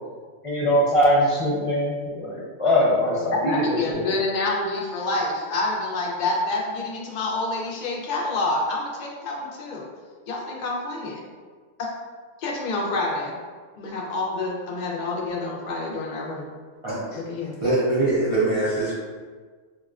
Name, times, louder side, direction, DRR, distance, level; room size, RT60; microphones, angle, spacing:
voice 1, 0.4-4.0, equal, 30° left, -8 dB, 0.8 m, -22 dB
voice 2, 3.2-9.8 10.3-11.2 11.8-11.9 12.4-13.4 13.8-16.5 17.1-17.6, left 2 dB, 60° left, -2 dB, 0.5 m, -27 dB
voice 3, 17.6-18.9, right 2 dB, 45° right, -9 dB, 0.4 m, -22 dB
4.5 x 2.1 x 2.4 m, 1.5 s
omnidirectional pair, 1.3 m